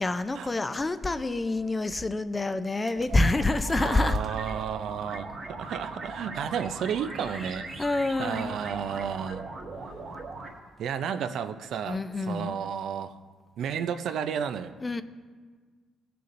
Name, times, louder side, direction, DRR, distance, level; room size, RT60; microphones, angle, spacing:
voice 1, 0.0-4.2 7.3-7.5 7.8-8.6 11.9-12.6 14.8-15.0, left 2 dB, 20° left, 11 dB, 0.5 m, -27 dB
sound 1, 2.8-10.5, right 3 dB, 50° right, 1.6 m, -40 dB
voice 2, 3.7-7.7 8.2-9.5 10.8-13.2 13.6-14.7, right 8 dB, 75° right, 10 dB, 0.5 m, -32 dB
18.5 x 6.8 x 2.6 m, 1.5 s
cardioid pair, 90°, 0 cm